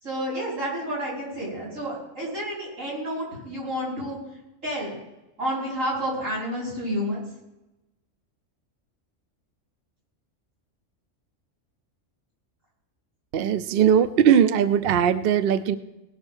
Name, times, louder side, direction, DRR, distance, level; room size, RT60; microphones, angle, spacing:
voice 1, 0.0-4.2 4.6-4.9 5.4-7.2, equal, 80° right, -4 dB, 6.1 m, -30 dB
voice 2, 13.3-15.8, right 8 dB, 60° right, 13 dB, 0.7 m, -20 dB
18.0 x 6.6 x 6.2 m, 0.97 s
omnidirectional pair, 1.3 m